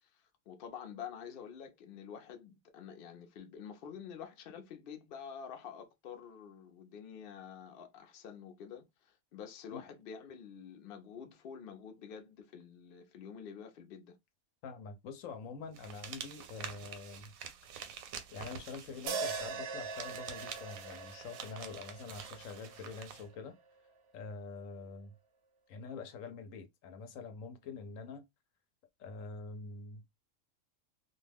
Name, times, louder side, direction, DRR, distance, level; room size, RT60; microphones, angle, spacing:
voice 1, 0.0-14.2, left 7 dB, 60° left, 0.6 m, -48 dB
voice 2, 14.6-17.3 18.3-23.6 24.1-25.1 25.7-28.2 29.0-30.1, left 4 dB, 75° left, 1.0 m, -45 dB
sound 1, 15.7-23.3, right 7 dB, 85° right, 1.0 m, -48 dB
sound 2, 19.1-23.3, right 5 dB, 65° right, 0.7 m, -41 dB
2.3 x 2.2 x 3.3 m
omnidirectional pair, 1.4 m